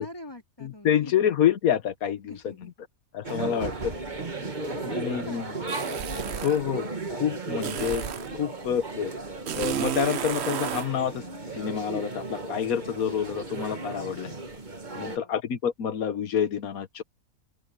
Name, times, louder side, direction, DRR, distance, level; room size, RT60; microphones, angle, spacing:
voice 1, 0.0-1.1 2.3-2.7 3.4-6.8 14.8-15.4, left 1 dB, 15° left, 3.9 m, -46 dB
voice 2, 0.6-2.5 3.1-3.9 4.8-5.4 6.3-6.8 7.1-8.0 8.4-9.1 9.5-11.2 11.6-14.3 14.9-17.0, left 9 dB, 85° left, 1.5 m, -27 dB
sound 1, 3.2-15.2, right 3 dB, 35° right, 1.7 m, -35 dB
sound 2, 5.7-6.6 7.6-8.3 9.5-10.9, right 9 dB, 55° right, 0.9 m, -32 dB
open air
omnidirectional pair, 1.5 m